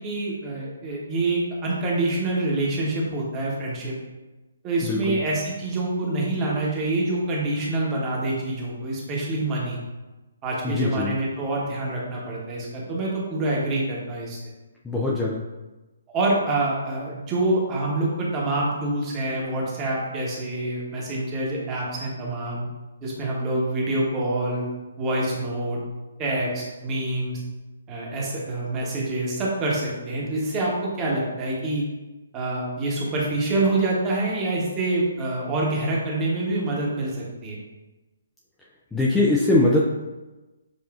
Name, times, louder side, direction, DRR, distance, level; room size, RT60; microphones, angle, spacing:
voice 1, 0.0-4.0 4.6-9.8 10.4-14.4 16.1-22.7 23.0-24.6 25.0-25.8 26.2-27.4 27.9-31.8 32.3-37.6, right 2 dB, 20° right, -4 dB, 1.0 m, -26 dB
voice 2, 4.8-5.2 10.6-11.1 14.8-15.4 38.9-39.8, left 2 dB, 5° left, -5 dB, 0.4 m, -21 dB
6.9 x 2.4 x 2.4 m, 1.1 s
figure-of-eight pair, 135°, 0 cm